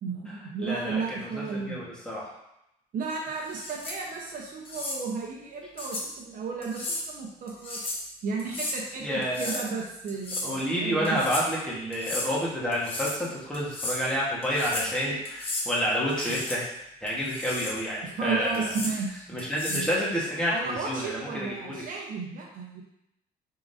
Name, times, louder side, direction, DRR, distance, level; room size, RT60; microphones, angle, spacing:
voice 1, 0.0-1.8 2.9-7.8 8.2-11.2 18.0-19.3 19.7-19.9 20.5-22.8, right 4 dB, 55° right, -1 dB, 0.8 m, -34 dB
voice 2, 0.6-2.3 9.0-9.5 10.4-16.6 17.0-18.7 19.3-21.8, equal, 5° left, -6 dB, 1.4 m, -29 dB
sound 1, 3.5-4.0 4.6-5.0 5.8-6.1 6.6-7.0 7.5-8.0 8.4-8.8 9.2-9.7 10.1-10.6 11.0-11.5 11.9-12.3 12.7-13.2 13.5-14.0 14.4-14.9 15.2-15.7 16.1-16.6 17.1-17.8 18.5-18.9 19.4-19.9, left 2 dB, 30° left, 1.0 m, -34 dB
4.7 x 3.7 x 2.7 m, 0.82 s
cardioid pair, 110°, 17 cm